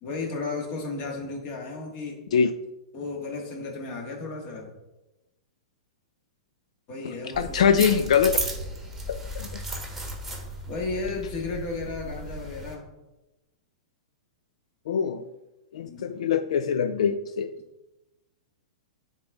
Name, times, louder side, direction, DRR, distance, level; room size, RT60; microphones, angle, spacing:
voice 1, 0.0-2.2 2.9-4.7 6.9-7.9 10.6-12.9 15.9-16.0, left 3 dB, 35° left, 1 dB, 1.7 m, -34 dB
voice 2, 7.0-8.4 9.1-9.5 14.9-15.2 15.7-17.5, left 7 dB, 75° left, 9 dB, 0.4 m, -23 dB
sound 1, 7.3-12.7, right 2 dB, 5° right, 1.3 m, -35 dB
9.5 x 4.0 x 3.5 m, 1.0 s
hypercardioid pair, 145°, 3 cm